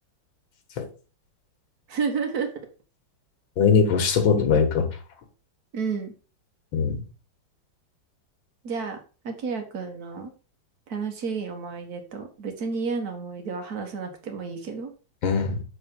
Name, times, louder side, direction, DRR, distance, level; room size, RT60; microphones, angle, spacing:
voice 1, 1.9-2.5 5.7-6.1 8.6-9.0 9.2-10.3 10.9-14.9, right 5 dB, 50° right, 5 dB, 1.8 m, -31 dB
voice 2, 3.6-4.9 6.7-7.0 15.2-15.6, left 5 dB, 85° left, 6 dB, 2.1 m, -21 dB
7.9 x 3.7 x 5.3 m, 0.35 s
omnidirectional pair, 2.1 m